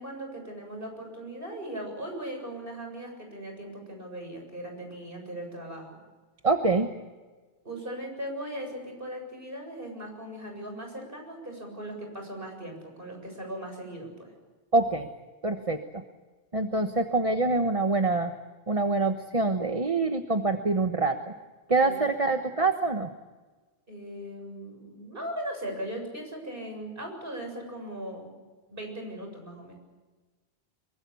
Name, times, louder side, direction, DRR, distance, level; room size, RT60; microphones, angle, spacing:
voice 1, 0.0-6.0 7.6-14.3 21.8-22.5 23.9-28.4 28.7-29.7, right 1 dB, 55° right, 3 dB, 7.8 m, -39 dB
voice 2, 6.4-6.9 14.7-15.1 15.4-16.0 16.5-18.3 18.7-21.3 21.7-23.1, right 3 dB, 35° right, 6 dB, 1.2 m, -25 dB
24.5 x 24.0 x 7.0 m, 1.3 s
omnidirectional pair, 1.1 m